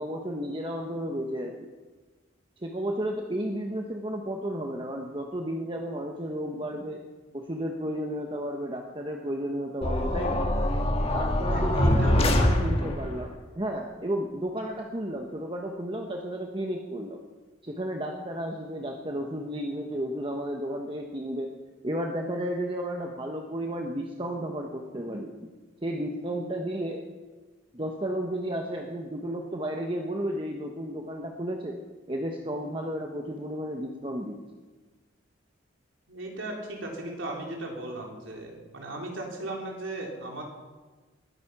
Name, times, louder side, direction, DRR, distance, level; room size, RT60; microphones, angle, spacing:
voice 1, 0.0-1.7 2.6-7.0 7.3-10.4 11.1-17.2 17.6-21.5 21.8-25.3 25.8-27.0 27.7-31.8 32.1-34.4, right 1 dB, 25° right, 1 dB, 1.2 m, -33 dB
sound 1, 9.8-13.2, left 1 dB, 30° left, 1.6 m, -24 dB
voice 2, 11.5-12.5 12.8-12.9 36.1-40.4, right 1 dB, 75° right, -1 dB, 3.9 m, -37 dB
20.5 x 10.5 x 6.1 m, 1.3 s
head